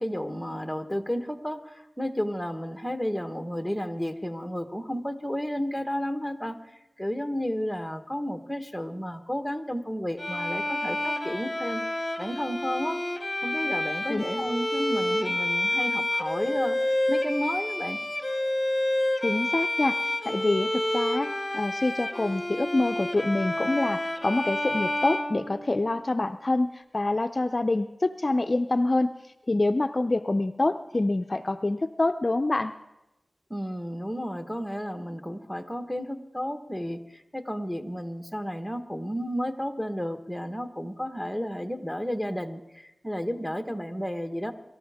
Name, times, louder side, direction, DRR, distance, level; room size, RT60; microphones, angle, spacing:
voice 1, 0.0-6.7 7.0-13.0 13.4-18.0 33.5-44.5, equal, 5° left, 7 dB, 1.3 m, -32 dB
Bowed string instrument, 10.2-26.0, left 1 dB, 20° left, 1.5 m, -29 dB
voice 2, 19.2-29.1 29.5-32.7, left 2 dB, 45° left, 9 dB, 0.5 m, -26 dB
24.5 x 13.5 x 3.6 m, 0.94 s
wide cardioid pair, 50°, 0 cm